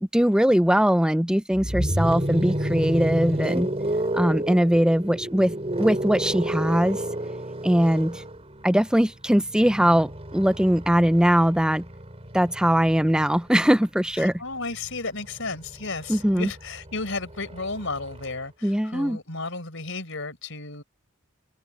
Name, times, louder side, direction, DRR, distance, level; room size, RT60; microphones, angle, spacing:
voice 1, 0.0-3.7 4.1-7.0 7.6-8.2 8.6-11.8 12.3-14.3 16.1-16.5 18.6-19.2, equal, 5° right, 0.6 m, -21 dB
sound 1, 1.5-13.5 14.7-18.3, right 1 dB, 30° right, 4.5 m, -31 dB
voice 2, 14.2-20.8, left 3 dB, 60° left, 5.5 m, -33 dB
open air
head